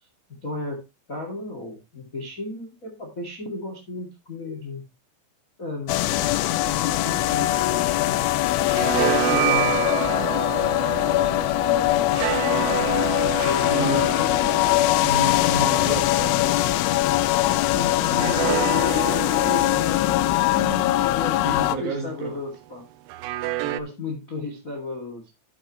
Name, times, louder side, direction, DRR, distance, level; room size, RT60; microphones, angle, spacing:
voice 1, 0.4-0.8 1.1-4.8 5.6-6.3 6.8-8.3 8.6-12.3 13.2-15.1 17.7-18.8 19.4-22.8 23.6-25.2, left 2 dB, 50° left, 0.9 m, -35 dB
sound 1, 5.9-21.8, left 16 dB, 80° left, 2.9 m, -22 dB
sound 2, 6.5-8.2 8.5-17.2 18.0-22.1 23.1-23.8, right 15 dB, 80° right, 2.7 m, -30 dB
voice 2, 13.7-14.2 15.0-16.6 21.4-22.4, right 4 dB, 60° right, 2.5 m, -30 dB
12.0 x 7.6 x 3.1 m
omnidirectional pair, 5.8 m